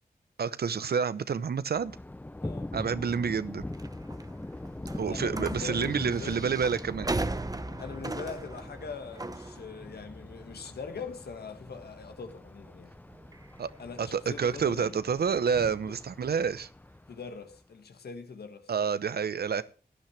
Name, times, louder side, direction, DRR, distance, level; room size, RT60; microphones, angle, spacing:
voice 1, 0.4-1.9 2.7-3.7 5.0-7.1 13.6-13.7 14.0-16.7 18.7-19.6, right 6 dB, 80° right, 0.8 m, -29 dB
Thunder, 1.7-17.6, left 1 dB, 10° left, 0.5 m, -42 dB
voice 2, 2.4-2.7 5.1-6.4 7.8-12.9 13.8-15.0 17.1-18.7, left 5 dB, 90° left, 1.6 m, -42 dB
sound 1, 3.7-15.7, right 2 dB, 25° right, 0.8 m, -40 dB
16.5 x 10.5 x 3.3 m
wide cardioid pair, 70°, 16 cm